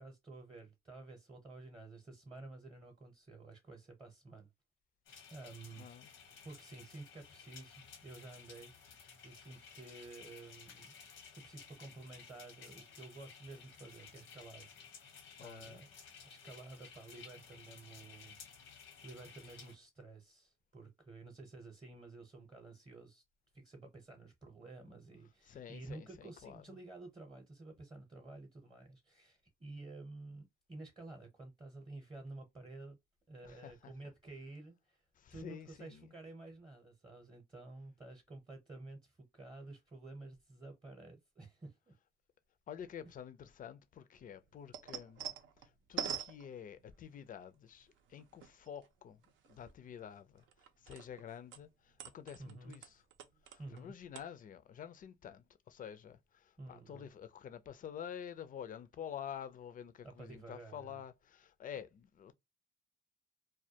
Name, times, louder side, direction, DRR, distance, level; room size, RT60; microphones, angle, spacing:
voice 1, 0.0-4.5 5.3-8.7 9.2-10.9 11.3-15.9 16.2-18.4 18.8-23.2 23.5-33.0 33.3-35.0 35.3-41.9 52.4-52.7 53.6-53.9 56.6-57.1 60.0-61.0, right 2 dB, 25° right, 0.7 m, -52 dB
sound 1, 5.1-19.8, left 6 dB, 90° left, 0.8 m, -56 dB
voice 2, 5.8-6.1 15.4-15.8 25.4-26.8 33.4-33.9 35.2-36.1 42.7-45.3 45.6-49.2 49.5-50.4 50.8-53.0 53.4-62.3, left 9 dB, 45° left, 0.4 m, -49 dB
sound 2, 44.2-47.1 47.8-48.9 49.2-51.2 51.5-53.8 54.1-54.2, right 8 dB, 75° right, 0.5 m, -45 dB
2.2 x 2.2 x 2.7 m
cardioid pair, 90°, 20 cm